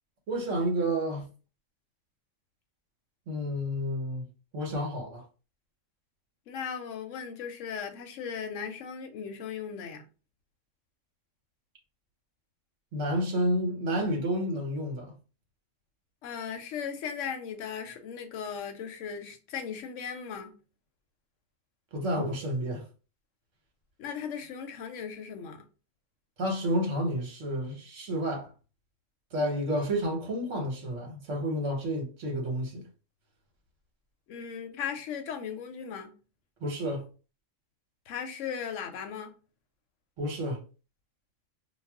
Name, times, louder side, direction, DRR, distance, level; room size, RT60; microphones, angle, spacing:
voice 1, 0.3-1.2 3.3-4.2 4.5-5.2 12.9-15.1 21.9-22.8 26.4-28.5 29.3-32.8 36.6-37.1 40.2-40.6, equal, 70° right, 1.2 m, -30 dB
voice 2, 6.5-10.0 16.2-20.6 24.0-25.6 34.3-36.2 38.1-39.4, left 7 dB, 75° left, 0.9 m, -37 dB
2.4 x 2.3 x 3.4 m
omnidirectional pair, 1.3 m